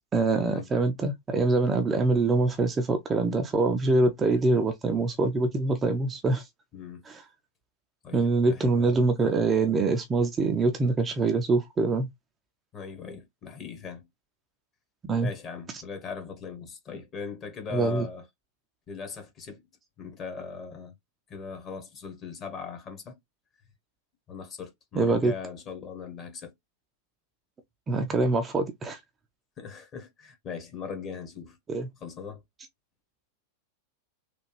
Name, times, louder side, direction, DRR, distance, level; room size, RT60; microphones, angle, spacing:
voice 1, 0.1-6.4 7.1-7.2 8.1-12.1 15.0-15.3 17.7-18.1 25.0-25.3 27.9-29.0 31.7-31.9, right 3 dB, 20° right, 0.5 m, -24 dB
voice 2, 8.0-9.1 12.7-14.1 15.2-18.3 18.9-19.7 20.0-20.9 21.3-23.2 24.3-26.5 29.6-31.6 32.0-32.4, left 6 dB, 30° left, 1.3 m, -39 dB
3.4 x 2.4 x 3.2 m
figure-of-eight pair, 90°, 0 cm